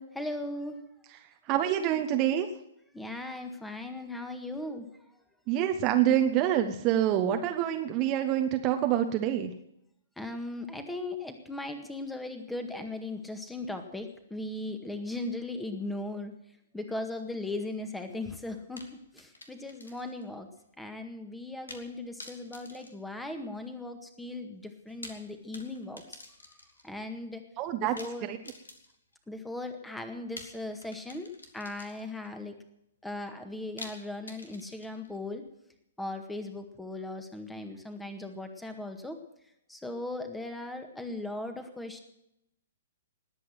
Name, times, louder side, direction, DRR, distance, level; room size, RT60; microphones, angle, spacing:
voice 1, 0.2-0.8 2.9-4.9 10.2-16.3 16.7-20.5 20.8-26.2 26.8-27.4 27.8-28.3 29.3-32.5 33.0-35.4 36.0-39.2 39.7-42.0, left 2 dB, 5° left, 7 dB, 1.8 m, -38 dB
voice 2, 1.5-2.5 5.5-9.5 27.6-27.9 28.2-28.4, right 11 dB, 30° right, 6 dB, 1.2 m, -26 dB
sound 1, 18.8-20.3 20.6-20.7 21.7-21.9 22.2-23.7 24.8-26.9 28.0-29.1 30.4-32.3 33.8-35.2, left 2 dB, 75° left, 2.4 m, -48 dB
20.0 x 8.4 x 7.8 m, 0.79 s
figure-of-eight pair, 115°, 0 cm